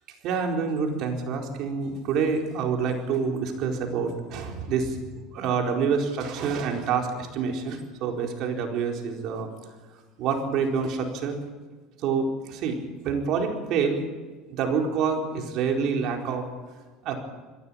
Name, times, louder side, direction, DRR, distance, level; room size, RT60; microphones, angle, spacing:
voice 1, 0.2-9.5 10.2-11.4 12.0-12.8 13.0-14.0 14.5-16.4 17.0-17.2, right 5 dB, 60° right, 2 dB, 4.4 m, -27 dB
21.5 x 15.5 x 8.9 m, 1.4 s
supercardioid pair, 115°, 0 cm